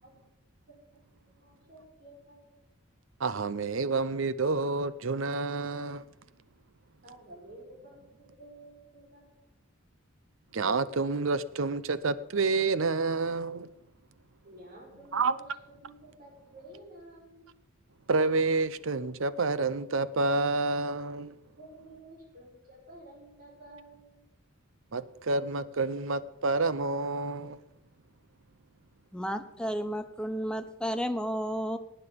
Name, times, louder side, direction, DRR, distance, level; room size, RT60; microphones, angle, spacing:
voice 1, 0.7-2.5 7.0-9.5 14.4-17.5 21.6-24.2, right 1 dB, 45° right, 5.0 m, -52 dB
voice 2, 3.2-6.0 10.5-13.7 15.1-15.3 18.1-21.3 24.9-27.6, right 3 dB, 65° right, 0.7 m, -29 dB
voice 3, 29.1-31.8, equal, 5° left, 0.7 m, -32 dB
19.0 x 8.9 x 5.2 m
head